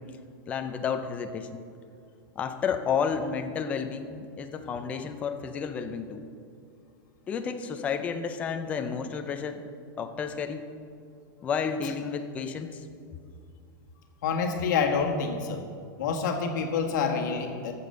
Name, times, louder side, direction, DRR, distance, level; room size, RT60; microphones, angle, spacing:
voice 1, 0.5-1.6 2.4-6.2 7.3-9.6 10.0-10.6 11.4-12.8, left 6 dB, 10° left, 7 dB, 0.4 m, -31 dB
voice 2, 14.2-15.6 16.0-17.7, left 5 dB, 55° left, 2 dB, 1.5 m, -27 dB
13.5 x 6.9 x 6.5 m, 2.3 s
supercardioid pair, 180°, 12 cm